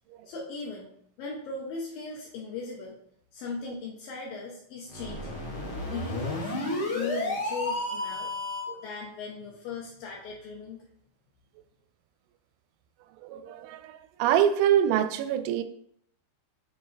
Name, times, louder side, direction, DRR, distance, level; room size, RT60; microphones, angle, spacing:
voice 1, 0.3-0.9 1.2-3.0 3.3-5.4 5.9-8.3 8.8-10.8, left 4 dB, 85° left, 2.0 m, -38 dB
sound 1, 4.9-8.8, left 1 dB, 60° left, 1.3 m, -32 dB
voice 2, 13.2-15.6, right 10 dB, 85° right, 2.9 m, -25 dB
7.9 x 6.2 x 3.3 m
omnidirectional pair, 5.5 m